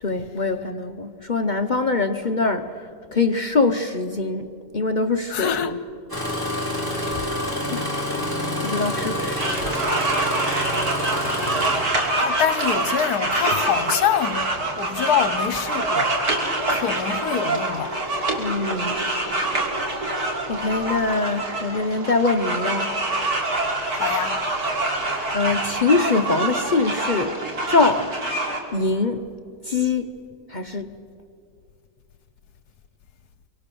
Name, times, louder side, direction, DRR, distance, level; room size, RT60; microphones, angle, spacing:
voice 1, 0.0-5.5 6.9-7.0 7.7-7.8 8.6-9.5 18.4-19.0 20.5-22.9 25.3-27.4 27.7-28.1 28.7-29.2 29.7-30.1 30.5-30.9, left 3 dB, 45° left, 0.6 m, -23 dB
voice 2, 5.3-5.8 8.4-8.5 12.0-16.1 16.7-17.9 23.9-24.4, left 9 dB, 75° left, 1.3 m, -25 dB
Engine starting, 6.1-12.5 13.5-13.8 14.4-14.8 15.4-15.6, equal, 10° right, 2.8 m, -28 dB
sound 1, 9.4-28.6, right 2 dB, 65° right, 3.6 m, -25 dB
26.0 x 24.5 x 6.9 m
omnidirectional pair, 1.8 m